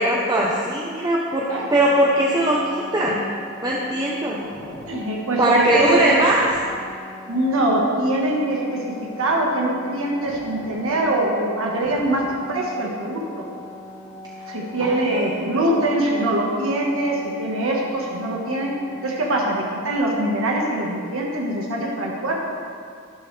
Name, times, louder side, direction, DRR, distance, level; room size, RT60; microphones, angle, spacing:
voice 1, 0.0-3.2 3.6-4.4 5.4-6.5 14.8-15.9, right 1 dB, 20° right, -4 dB, 0.9 m, -20 dB
sound 1, 1.4-20.0, left 1 dB, 25° left, 2.1 m, -40 dB
voice 2, 4.9-6.2 7.3-8.8 9.2-12.2 12.5-13.2 14.5-18.7 19.0-22.4, right 1 dB, 75° right, -2 dB, 1.5 m, -23 dB
13.0 x 11.5 x 3.4 m, 2.2 s
head